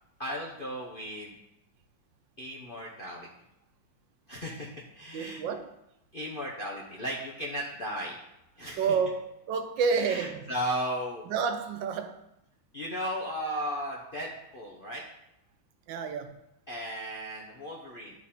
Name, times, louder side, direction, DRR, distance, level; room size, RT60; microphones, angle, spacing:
voice 1, 0.2-1.4 2.4-3.3 4.3-5.4 6.1-8.2 8.6-8.9 10.0-11.2 12.7-15.0 16.7-18.1, equal, 45° left, -3 dB, 0.7 m, -35 dB
voice 2, 5.1-5.7 8.8-10.5 11.3-12.2 15.9-16.3, right 5 dB, 75° right, 7 dB, 1.2 m, -29 dB
11.0 x 4.1 x 4.3 m, 0.84 s
omnidirectional pair, 2.2 m